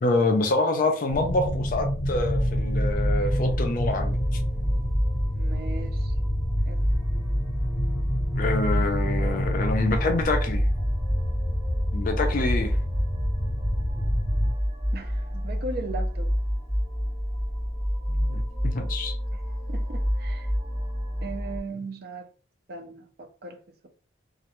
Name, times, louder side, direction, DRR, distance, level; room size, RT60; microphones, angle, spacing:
voice 1, 0.0-4.4 8.4-10.6 11.9-12.8 18.1-19.1, left 2 dB, 45° left, 0.4 m, -26 dB
sound 1, 1.1-14.5, equal, 25° left, 0.8 m, -30 dB
sound 2, 2.1-21.6, equal, 10° right, 0.7 m, -28 dB
voice 2, 5.3-6.1 6.7-6.8 14.9-16.3 19.3-19.4 19.7-20.5 21.2-22.3 22.7-23.9, right 3 dB, 50° right, 0.4 m, -38 dB
2.4 x 2.2 x 2.9 m
head